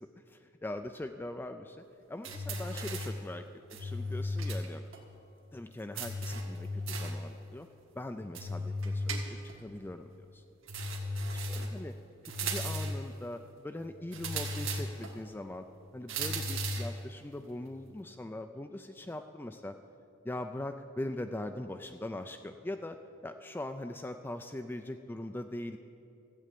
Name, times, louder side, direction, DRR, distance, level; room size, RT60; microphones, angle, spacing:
voice 1, 0.6-4.8 5.5-7.7 8.0-10.4 11.5-11.9 12.2-15.6 15.9-19.7 20.2-23.0 23.2-25.8, left 1 dB, 10° left, 6 dB, 0.3 m, -41 dB
sound 1, 2.2-3.2 3.7-4.7 4.9-5.0 6.0-7.2 8.4-9.6 10.7-11.8 12.3-13.1 14.1-15.2 16.1-17.0, equal, 70° right, 1.6 m, -35 dB
14.0 x 7.8 x 8.4 m, 2.8 s
head